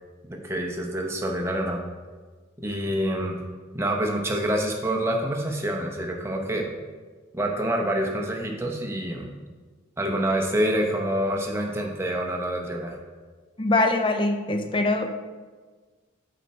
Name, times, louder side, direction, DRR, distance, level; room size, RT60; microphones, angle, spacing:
voice 1, 0.2-1.8 2.6-3.4 3.7-6.7 7.3-9.3 10.0-13.0, right 1 dB, 15° right, 1 dB, 0.7 m, -27 dB
voice 2, 13.6-15.1, left 2 dB, 25° left, 6 dB, 0.5 m, -23 dB
7.9 x 4.3 x 4.3 m, 1.4 s
head